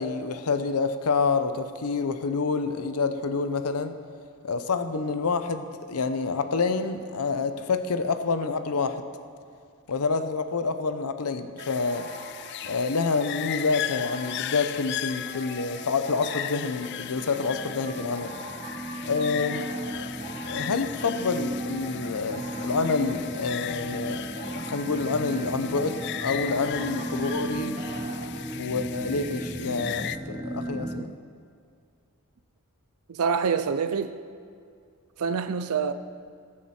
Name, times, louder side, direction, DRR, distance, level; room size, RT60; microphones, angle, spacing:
voice 1, 0.0-3.9 4.4-9.0 9.9-12.1 12.6-18.3 19.0-19.7 20.0-20.1 20.5-27.8 28.5-31.1, left 4 dB, 80° left, 0.7 m, -28 dB
sound 1, 11.6-30.2, left 12 dB, 50° left, 0.3 m, -37 dB
sound 2, 11.6-28.3, right 2 dB, 40° right, 2.8 m, -43 dB
sound 3, 15.6-31.1, right 1 dB, 10° right, 0.5 m, -36 dB
voice 2, 33.1-34.2 35.2-35.9, right 6 dB, 70° right, 0.5 m, -26 dB
21.0 x 7.3 x 4.4 m
head